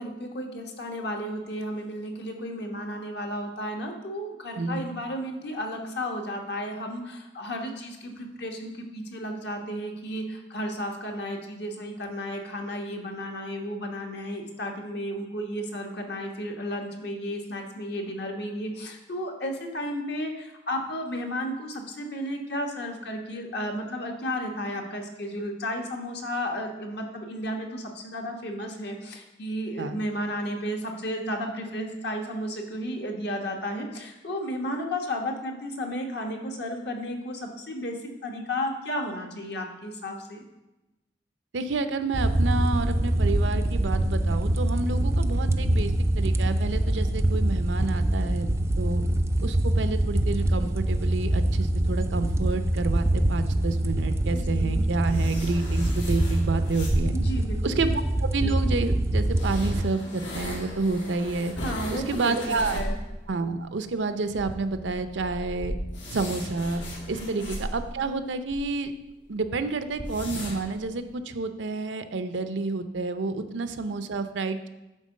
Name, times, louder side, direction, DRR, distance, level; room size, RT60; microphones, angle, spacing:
voice 1, 0.0-37.9 38.2-40.4 54.3-54.8 57.1-57.8 61.6-62.3 62.7-63.0 67.1-67.3, equal, 65° left, 2 dB, 1.2 m, -33 dB
voice 2, 41.5-48.5 48.8-49.0 49.4-57.1 57.6-57.9 58.2-61.5 61.9-62.8 63.3-65.8 66.1-66.8 67.1-68.9 69.3-74.7, right 3 dB, 85° right, 9 dB, 0.6 m, -29 dB
sound 1, 42.1-59.8, right 1 dB, 15° right, 0.3 m, -24 dB
sound 2, 54.6-57.4 58.4-58.5 59.3-63.1 63.4-63.5 63.8-63.9 64.3-68.6 69.0-69.1 69.3-69.4 69.9-70.8, equal, 85° left, 2.1 m, -36 dB
9.0 x 3.9 x 6.4 m, 1.0 s
head